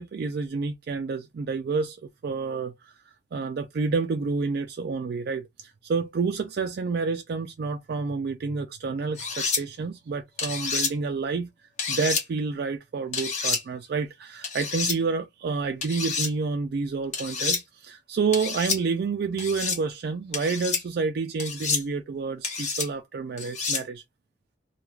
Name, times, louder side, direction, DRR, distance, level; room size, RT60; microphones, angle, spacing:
voice 1, 0.0-2.0 2.2-2.9 3.3-11.5 11.9-24.0, right 4 dB, 60° right, 0.3 m, -29 dB
sound 1, 9.2-9.6 10.4-10.9 11.8-12.2 13.1-13.6 14.4-15.0 15.8-16.3 17.1-17.6 18.3-18.8 19.4-19.8 20.3-20.8 21.4-21.8 22.4-22.9 23.4-23.8, left 5 dB, 40° left, 0.9 m, -28 dB
2.3 x 2.3 x 3.1 m
head